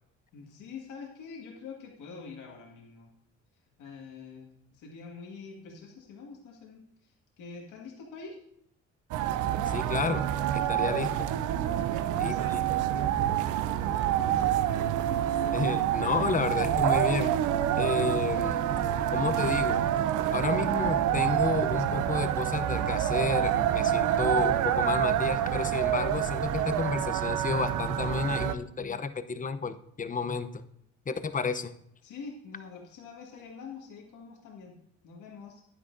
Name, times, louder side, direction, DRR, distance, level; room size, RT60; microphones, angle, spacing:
voice 1, 0.3-3.1 3.8-8.4 11.8-12.6 13.9-14.9 32.0-34.8 35.0-35.6, left 4 dB, 90° left, -1 dB, 1.8 m, -46 dB
sound 1, 9.1-28.5, right 11 dB, 85° right, 0.6 m, -27 dB
voice 2, 9.7-10.3 10.5-11.3 12.2-12.6 15.5-17.3 17.8-18.6 19.1-19.8 20.3-30.6 31.1-31.7, left 4 dB, 25° left, 11 dB, 0.7 m, -31 dB
10.5 x 9.9 x 2.6 m, 0.75 s
cardioid pair, 90°, 30 cm